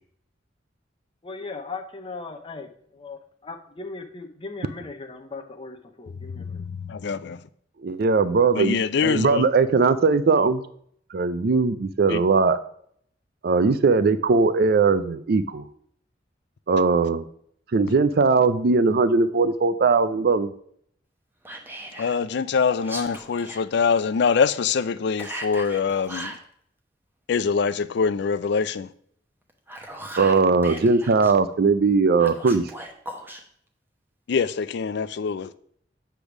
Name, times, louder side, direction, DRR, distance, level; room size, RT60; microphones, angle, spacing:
voice 1, 1.2-6.6, left 3 dB, 30° left, 0.7 m, -38 dB
voice 2, 6.4-7.4 8.5-9.4 12.1-12.2 22.0-26.3 27.3-28.9 34.3-35.5, left 5 dB, 65° left, 0.4 m, -24 dB
voice 3, 7.8-10.6 11.1-12.6 13.4-15.6 16.7-17.2 17.7-20.5 30.2-32.7, right 4 dB, 55° right, 0.5 m, -20 dB
Whispering, 21.4-22.2 22.8-23.6 25.2-26.4 29.5-31.3 32.2-33.4, right 1 dB, 10° right, 0.9 m, -38 dB
8.1 x 3.4 x 6.0 m
head